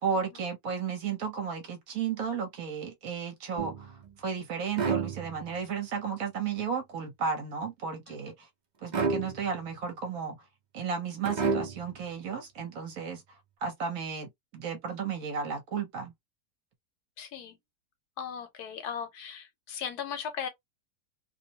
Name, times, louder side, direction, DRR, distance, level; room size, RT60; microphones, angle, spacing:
voice 1, 0.0-8.5 8.8-10.4 10.7-13.2 13.6-16.1, right 6 dB, 65° right, 1.1 m, -34 dB
sound 1, 3.6-4.1 4.7-5.7 8.9-9.7 11.2-12.0, right 5 dB, 90° right, 0.4 m, -31 dB
voice 2, 17.2-17.6 18.2-20.5, left 7 dB, 70° left, 1.2 m, -37 dB
2.8 x 2.0 x 2.7 m
omnidirectional pair, 1.8 m